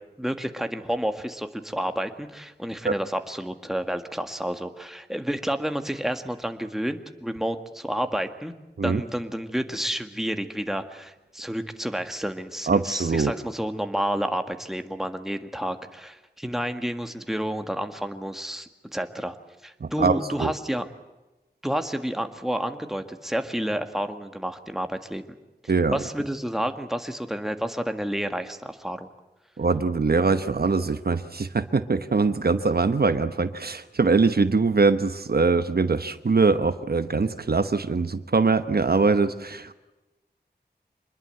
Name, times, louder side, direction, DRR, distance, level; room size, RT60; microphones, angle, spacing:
voice 1, 0.2-8.5 8.8-19.4 19.6-20.9 21.6-25.2 25.9-29.1, equal, ahead, 7 dB, 1.8 m, -30 dB
voice 2, 12.7-13.3 19.8-20.5 25.7-26.0 29.6-39.7, right 4 dB, 65° right, 11 dB, 1.0 m, -22 dB
25.0 x 21.0 x 7.8 m, 1.1 s
wide cardioid pair, 70°, 17 cm